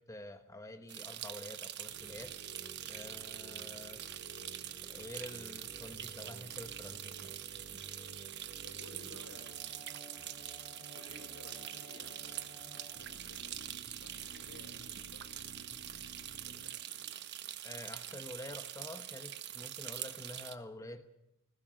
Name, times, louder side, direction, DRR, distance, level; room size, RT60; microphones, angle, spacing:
voice 1, 0.0-2.4 2.9-4.0 4.8-7.8 17.6-21.1, left 1 dB, 15° left, 7 dB, 1.2 m, -48 dB
sound 1, 0.9-20.5, right 11 dB, 50° right, 1.2 m, -44 dB
sound 2, 1.9-16.7, right 1 dB, 55° left, 6.2 m, -54 dB
voice 2, 8.6-9.8 10.9-15.5 16.4-17.1, left 1 dB, 80° left, 5 dB, 5.3 m, -57 dB
21.5 x 17.0 x 9.4 m, 0.88 s
head